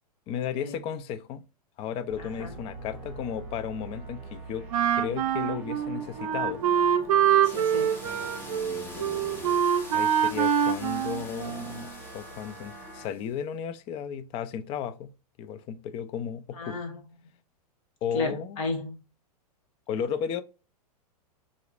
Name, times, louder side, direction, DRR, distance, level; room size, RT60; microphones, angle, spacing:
voice 1, 0.3-1.4 1.8-4.7 5.0-6.6 8.0-9.6 9.9-15.1 15.4-16.8 18.0-18.6 19.9-20.4, left 8 dB, 30° left, 0.4 m, -34 dB
sound 1, 2.1-13.1, right 2 dB, 10° right, 1.3 m, -43 dB
voice 2, 2.2-2.6 7.4-8.0 16.5-17.3 18.1-19.0, left 3 dB, 55° left, 1.5 m, -35 dB
Wind instrument woodwind instrument, 4.7-11.9, right 9 dB, 60° right, 0.6 m, -25 dB
sound 2, 7.4-13.3, left 2 dB, 10° left, 0.8 m, -47 dB
4.0 x 2.4 x 2.5 m
hypercardioid pair, 110°, 20 cm